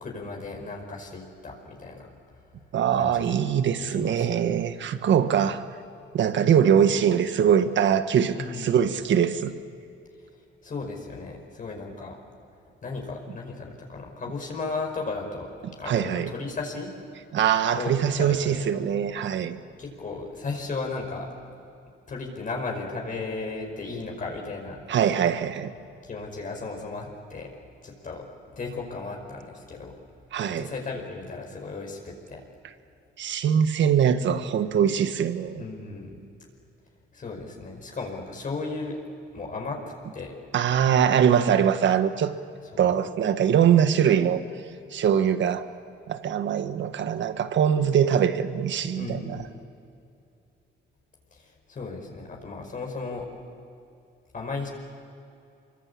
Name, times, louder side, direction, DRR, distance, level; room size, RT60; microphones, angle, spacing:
voice 1, 0.0-2.1 3.0-3.4 3.9-4.6 8.4-8.8 10.6-12.2 12.8-15.5 15.8-16.9 17.7-18.7 19.8-21.3 22.1-24.9 26.0-27.5 27.8-28.3 28.5-29.9 30.6-32.4 35.6-36.2 37.1-39.0 39.3-39.8 40.1-40.3 42.7-42.9 48.9-49.6 51.3-53.3 54.3-54.7, left 3 dB, 40° left, 0 dB, 5.2 m, -35 dB
voice 2, 2.7-5.6 6.1-9.5 15.9-16.3 17.3-19.6 24.9-25.7 30.3-30.7 33.2-35.6 40.5-42.3 42.8-44.4 44.9-45.7 46.1-49.4, right 8 dB, 70° right, 10 dB, 1.6 m, -22 dB
25.5 x 23.5 x 8.6 m, 2.7 s
cardioid pair, 90°, 20 cm